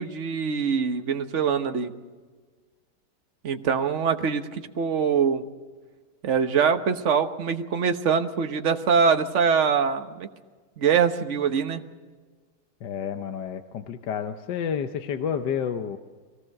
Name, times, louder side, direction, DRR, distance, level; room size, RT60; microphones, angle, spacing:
voice 1, 0.0-1.9 3.4-5.4 6.2-10.3 10.8-11.8, right 6 dB, 45° right, 7 dB, 1.3 m, -23 dB
voice 2, 12.8-16.0, left 7 dB, 75° left, 7 dB, 1.5 m, -30 dB
23.0 x 18.0 x 6.6 m, 1.4 s
omnidirectional pair, 1.9 m